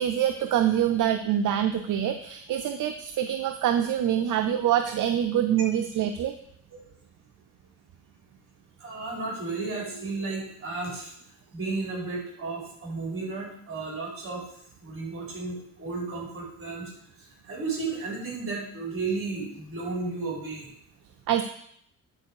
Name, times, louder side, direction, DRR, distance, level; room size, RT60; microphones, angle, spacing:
voice 1, 0.0-6.3 21.3-21.4, right 10 dB, 65° right, 7 dB, 0.6 m, -25 dB
voice 2, 8.8-11.1 11.5-14.4 14.8-16.9 17.5-20.7, right 3 dB, 40° right, -3 dB, 4.2 m, -33 dB
9.8 x 4.6 x 6.4 m, 0.68 s
cardioid pair, 125°, 34 cm